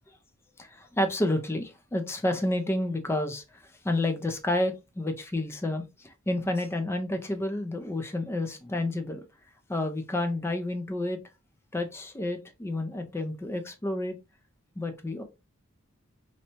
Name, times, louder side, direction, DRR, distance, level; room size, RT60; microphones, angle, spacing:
voice 1, 0.6-3.4 3.8-9.2 9.7-11.2 11.7-14.2 14.8-15.2, left 1 dB, 10° left, 0.3 m, -30 dB
2.7 x 2.1 x 2.8 m
head